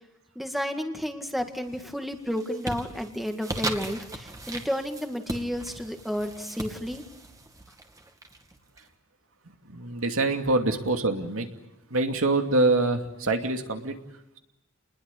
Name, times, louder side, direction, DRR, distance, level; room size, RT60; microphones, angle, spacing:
voice 1, 0.4-7.0, equal, ahead, 5 dB, 2.1 m, -31 dB
sound 1, 1.3-1.8 2.2-8.8, right 2 dB, 15° right, 2.4 m, -38 dB
voice 2, 9.7-11.5 11.9-13.9, right 2 dB, 80° right, 5 dB, 2.6 m, -25 dB
29.5 x 21.0 x 8.5 m, 0.85 s
head